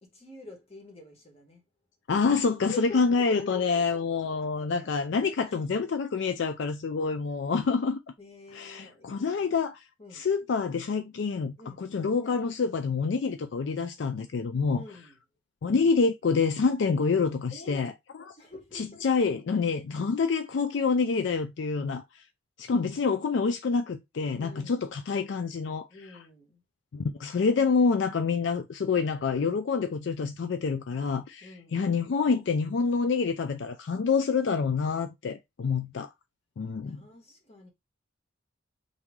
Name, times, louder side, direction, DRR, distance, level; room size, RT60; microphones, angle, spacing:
voice 1, 0.0-1.6 2.7-3.9 4.1-5.6 8.2-9.7 10.0-10.3 11.6-11.9 14.7-15.2 17.5-17.9 18.4-19.1 24.4-24.9 25.9-26.6 31.4-31.9 36.8-37.7, left 3 dB, 30° left, 1.4 m, -47 dB
voice 2, 2.1-8.0 8.5-9.8 10.1-14.8 15.6-17.9 18.3-18.4 18.7-22.2 22.6-25.9 26.9-31.5 31.7-36.1 36.6-37.0, left 5 dB, 65° left, 0.4 m, -27 dB
4.0 x 3.1 x 3.6 m
head